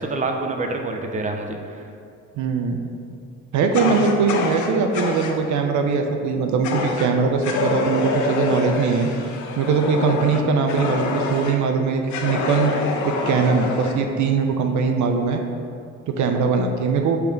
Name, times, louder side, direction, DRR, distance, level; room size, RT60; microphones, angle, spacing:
voice 1, 0.0-1.8 10.3-10.6, right 2 dB, 25° right, 4 dB, 0.6 m, -27 dB
voice 2, 2.4-2.8 3.5-9.1 9.6-12.7 13.0-15.4 16.1-17.2, right 5 dB, 75° right, 5 dB, 0.6 m, -21 dB
Fire, 3.7-5.3 6.6-7.1 7.4-11.6 12.1-14.0, left 3 dB, 75° left, 0.8 m, -26 dB
7.0 x 3.4 x 5.2 m, 2.4 s
cardioid pair, 90°, 30 cm